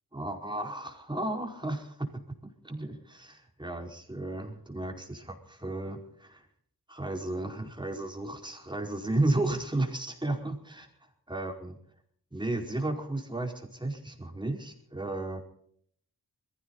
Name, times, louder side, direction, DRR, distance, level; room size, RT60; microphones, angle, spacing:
voice 1, 0.1-2.1 2.6-6.5 6.9-11.8 12.3-15.4, right 2 dB, 15° right, 2 dB, 4.9 m, -33 dB
21.5 x 16.0 x 4.1 m, 0.62 s
cardioid pair, 65°, 36 cm